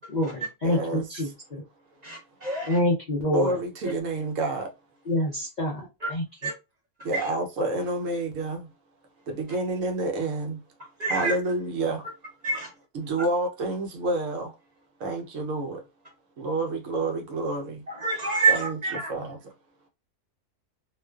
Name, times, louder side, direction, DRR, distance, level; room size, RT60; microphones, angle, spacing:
voice 1, 0.0-1.6 2.7-3.6 5.1-5.9 6.1-6.2, left 1 dB, 60° left, 0.5 m, -27 dB
voice 2, 0.6-1.3 3.3-4.7 7.0-8.7 9.3-10.6 11.1-12.1 12.9-14.5 15.0-15.8 16.4-17.8 18.5-18.8 19.1-19.4, right 2 dB, 70° right, 1.0 m, -29 dB
voice 3, 2.0-2.8 6.0-6.1 6.4-6.5 7.1-7.3 11.0-11.4 12.4-12.7 17.9-19.1, right 4 dB, 45° right, 0.5 m, -27 dB
2.4 x 2.3 x 2.2 m
omnidirectional pair, 1.4 m